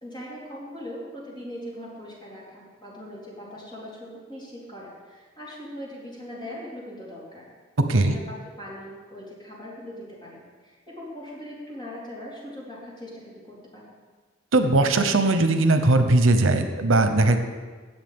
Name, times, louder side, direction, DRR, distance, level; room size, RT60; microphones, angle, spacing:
voice 1, 0.0-7.5 7.9-14.0, left 1 dB, 25° left, -7 dB, 3.9 m, -40 dB
voice 2, 14.5-17.4, right 2 dB, 90° right, 8 dB, 0.8 m, -19 dB
17.5 x 7.1 x 3.6 m, 1.4 s
head